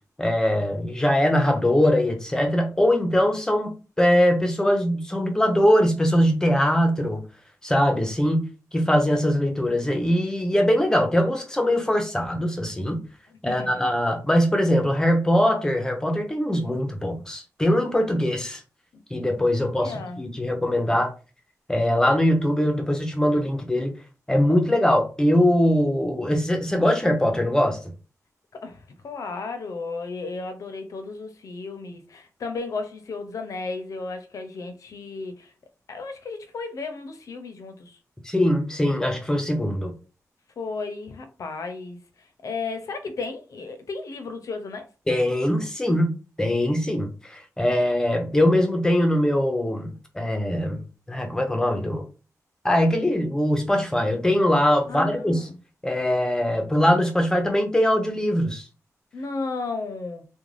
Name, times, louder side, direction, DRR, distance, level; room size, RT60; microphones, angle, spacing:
voice 1, 0.2-7.2 7.6-13.0 13.4-18.6 19.1-21.1 21.7-23.9 24.3-27.8 38.2-39.9 45.1-46.1 46.4-50.8 51.1-52.0 52.6-55.5 55.8-58.6, equal, 10° left, 0.5 m, -22 dB
voice 2, 13.3-13.9 19.7-20.2 28.5-35.5 35.9-38.0 40.6-44.9 54.9-55.6 59.1-60.3, left 3 dB, 70° left, 0.5 m, -34 dB
2.5 x 2.1 x 3.2 m
wide cardioid pair, 160°, 6 cm